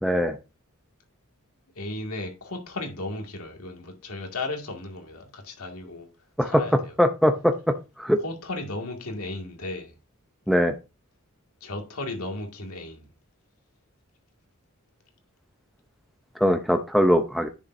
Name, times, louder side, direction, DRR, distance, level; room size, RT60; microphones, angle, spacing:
voice 1, 0.0-0.4 6.4-6.6 7.0-7.5 8.0-8.2 10.5-10.7 16.4-17.5, equal, ahead, 0.6 m, -21 dB
voice 2, 1.8-6.1 6.4-7.0 8.2-9.9 11.6-13.1, left 2 dB, 80° left, 2.1 m, -35 dB
10.0 x 6.8 x 2.6 m
head